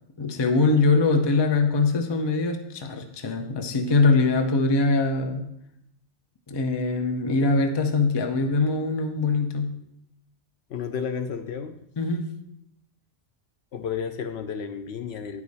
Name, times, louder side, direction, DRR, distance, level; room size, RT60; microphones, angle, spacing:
voice 1, 0.2-5.5 6.5-9.7 12.0-12.3, left 3 dB, 30° left, 6 dB, 0.5 m, -22 dB
voice 2, 10.7-11.8 13.7-15.4, left 7 dB, 70° left, 8 dB, 0.8 m, -32 dB
9.3 x 4.9 x 4.0 m, 0.80 s
omnidirectional pair, 1.2 m